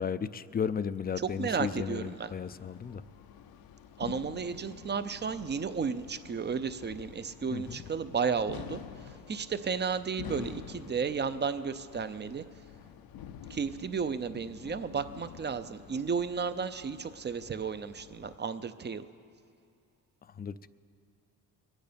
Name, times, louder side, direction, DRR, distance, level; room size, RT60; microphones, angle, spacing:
voice 1, 0.0-3.0 7.5-7.8 20.4-20.7, left 7 dB, 25° left, 15 dB, 0.4 m, -34 dB
sound 1, 1.1-18.4, left 9 dB, 75° left, 0.7 m, -48 dB
voice 2, 1.2-2.3 4.0-8.8 9.3-12.4 13.5-19.1, right 6 dB, 30° right, 12 dB, 0.6 m, -33 dB
22.5 x 9.1 x 5.2 m, 2.5 s
cardioid pair, 90°, 36 cm